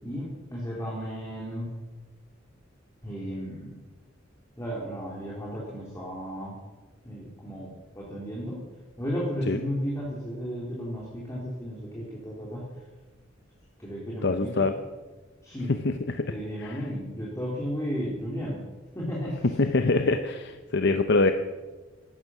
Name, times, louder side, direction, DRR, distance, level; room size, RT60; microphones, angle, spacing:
voice 1, 0.0-1.7 3.0-3.8 4.6-6.6 7.0-8.6 9.0-12.6 13.8-14.7 15.4-15.7 16.2-18.6 18.9-19.5, equal, 15° left, -4 dB, 3.2 m, -34 dB
voice 2, 14.2-14.7 15.7-16.3 16.6-16.8 19.6-21.3, left 3 dB, 60° left, 8 dB, 0.8 m, -24 dB
16.5 x 12.0 x 6.1 m, 1.3 s
head